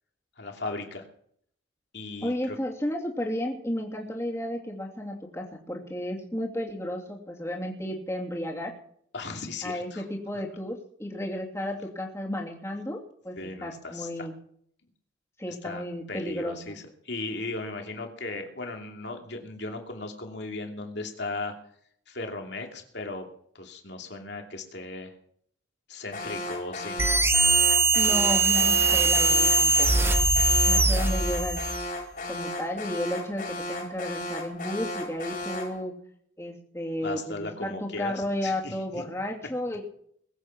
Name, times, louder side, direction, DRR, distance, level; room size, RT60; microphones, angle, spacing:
voice 1, 0.4-1.0 1.9-2.6 9.1-10.0 10.3-10.4 13.4-14.1 15.5-21.5 22.1-23.3 23.5-25.1 25.9-27.0 30.9-31.1 37.0-39.0, left 3 dB, 60° left, 3 dB, 2.7 m, -37 dB
voice 2, 2.2-8.7 9.6-14.3 15.4-16.8 27.9-30.1 30.6-31.6 32.3-35.9 36.4-39.8, left 1 dB, 15° left, 0 dB, 2.8 m, -33 dB
Alarm, 26.1-35.8, left 1 dB, 45° left, 4.5 m, -35 dB
sound 1, 27.0-31.9, right 3 dB, 10° right, 0.8 m, -21 dB
21.5 x 8.6 x 6.1 m, 0.64 s
head